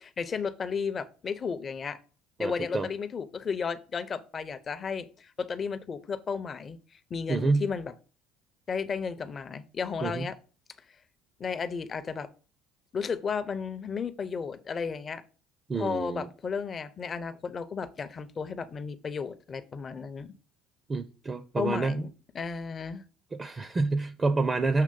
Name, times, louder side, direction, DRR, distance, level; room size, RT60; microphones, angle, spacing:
voice 1, 0.0-2.0 2.4-7.9 8.7-10.4 10.9-11.0 11.4-12.3 12.9-15.2 15.8-20.3 21.6-22.1 22.3-23.0, left 5 dB, 35° left, 0.6 m, -34 dB
voice 2, 2.4-2.9 7.3-7.7 10.0-10.3 15.7-16.3 20.9-22.0 23.3-24.8, right 3 dB, 25° right, 0.5 m, -28 dB
6.6 x 3.0 x 5.2 m
supercardioid pair, 105°, 0 cm